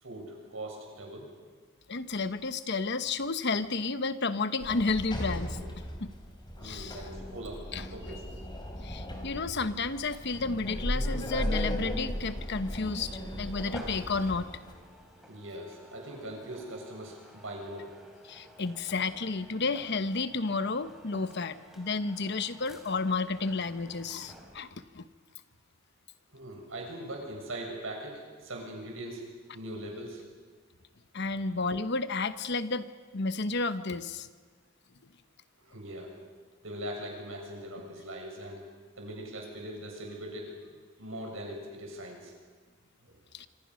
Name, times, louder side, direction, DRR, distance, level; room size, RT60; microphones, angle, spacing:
voice 1, 0.0-1.3 6.6-8.3 15.2-17.9 26.3-29.2 29.5-30.2 35.6-36.1 36.6-38.6 39.0-40.6 41.0-42.3 43.0-43.2, right 1 dB, 80° right, 1 dB, 7.1 m, -41 dB
voice 2, 1.9-5.6 6.0-6.1 6.6-7.0 7.7-7.9 8.8-14.5 18.3-24.7 24.9-25.1 31.1-32.9 33.1-34.3 43.3-43.5, left 3 dB, 60° left, 12 dB, 1.0 m, -31 dB
Sliding door, 4.6-14.7, equal, 20° left, 3.6 m, -36 dB
sound 1, 13.5-24.8, equal, ahead, 3.8 m, -53 dB
26.5 x 26.0 x 6.4 m, 1.5 s
head